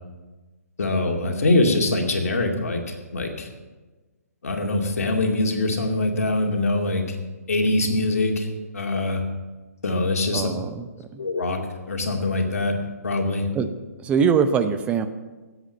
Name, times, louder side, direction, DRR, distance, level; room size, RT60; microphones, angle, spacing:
voice 1, 0.8-3.5 4.4-7.2 7.5-8.5 8.7-9.2 9.8-10.5 11.2-11.6 11.9-12.8 13.0-13.5, left 2 dB, 65° left, 2 dB, 2.5 m, -23 dB
voice 2, 10.3-10.9 11.1-11.2 13.5-13.7 14.0-15.1, right 6 dB, 15° right, 9 dB, 0.7 m, -22 dB
18.5 x 8.1 x 5.6 m, 1.2 s
figure-of-eight pair, 130°, 9 cm